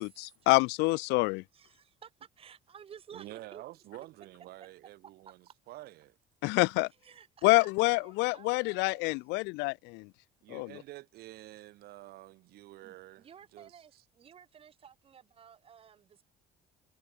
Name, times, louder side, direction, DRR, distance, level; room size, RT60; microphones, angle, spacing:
voice 1, 0.5-1.4 6.4-6.9 7.4-10.1 10.5-10.7, left 25 dB, 85° left, 0.6 m, -27 dB
voice 2, 1.5-3.6 5.3-5.4 7.0-9.2 12.8-16.2, right 8 dB, 35° right, 6.4 m, -54 dB
voice 3, 3.1-6.2 10.4-14.0, right 17 dB, 65° right, 4.7 m, -49 dB
cardioid pair, 150°, 17 cm